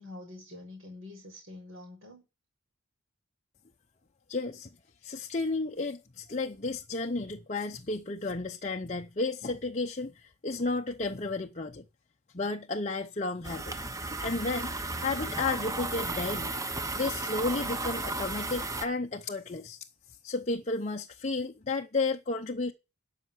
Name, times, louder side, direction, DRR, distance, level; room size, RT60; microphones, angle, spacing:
voice 1, 0.0-2.2, left 2 dB, 55° right, 4.8 m, -46 dB
voice 2, 4.3-4.7 5.0-11.9 12.3-13.9 14.2-14.7 15.0-16.5 16.9-19.8 20.2-22.7, left 3 dB, 30° left, 0.7 m, -32 dB
sound 1, 13.4-18.9, right 2 dB, 15° right, 0.8 m, -34 dB
12.5 x 5.8 x 7.6 m
head